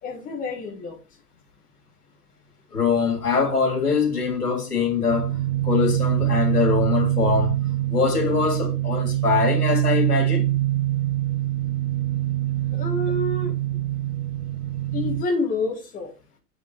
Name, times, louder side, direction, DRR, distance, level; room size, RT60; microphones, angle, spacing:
voice 1, 0.0-0.9 12.7-13.5 14.9-16.1, left 3 dB, 15° left, 1.7 m, -28 dB
voice 2, 2.7-5.3 5.6-7.5 7.9-10.5, left 5 dB, 70° left, 3.3 m, -23 dB
sound 1, 5.1-15.2, right 14 dB, 45° right, 0.9 m, -24 dB
9.0 x 8.7 x 3.3 m
figure-of-eight pair, 105°, 47 cm